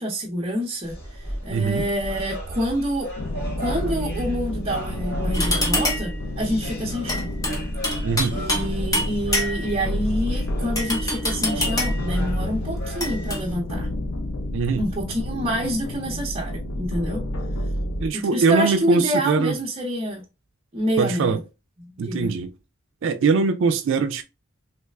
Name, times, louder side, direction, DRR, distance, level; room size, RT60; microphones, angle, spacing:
voice 1, 0.0-3.1 3.6-7.3 8.3-13.9 14.8-17.2 18.1-20.2 20.7-21.4 21.8-22.3, equal, 30° right, 0.7 m, -27 dB
sound 1, 0.8-13.6, right 1 dB, 50° left, 1.9 m, -35 dB
voice 2, 1.5-1.9 8.0-8.4 14.5-14.8 18.0-19.5 21.0-21.4 22.0-22.5 23.0-24.2, right 4 dB, 60° right, 0.4 m, -22 dB
sound 2, 3.2-18.1, left 1 dB, 75° left, 0.6 m, -29 dB
sound 3, 5.3-6.2 7.1-8.7 8.9-9.8 10.7-12.1 13.0-13.4, left 1 dB, 15° left, 0.8 m, -26 dB
3.3 x 3.2 x 2.3 m
head